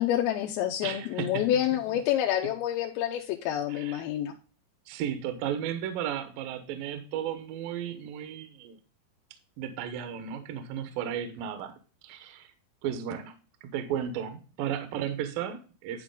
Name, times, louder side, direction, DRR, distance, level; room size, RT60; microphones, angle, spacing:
voice 1, 0.0-4.3, left 11 dB, 80° left, 2 dB, 2.5 m, -28 dB
voice 2, 0.8-1.5 3.7-4.0 4.9-8.8 9.6-12.5 12.8-13.4 13.6-16.0, right 9 dB, 75° right, 9 dB, 2.4 m, -34 dB
10.5 x 4.6 x 3.7 m, 0.36 s
omnidirectional pair, 4.7 m